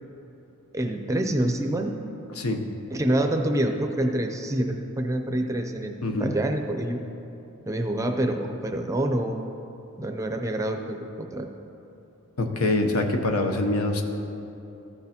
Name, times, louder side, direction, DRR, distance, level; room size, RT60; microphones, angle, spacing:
voice 1, 0.7-2.0 2.9-5.9 6.2-7.0 7.7-9.4 10.0-11.5, right 1 dB, 15° right, 4 dB, 0.5 m, -26 dB
voice 2, 12.4-14.0, left 2 dB, 90° left, 4 dB, 0.8 m, -24 dB
14.5 x 6.5 x 2.8 m, 2.9 s
head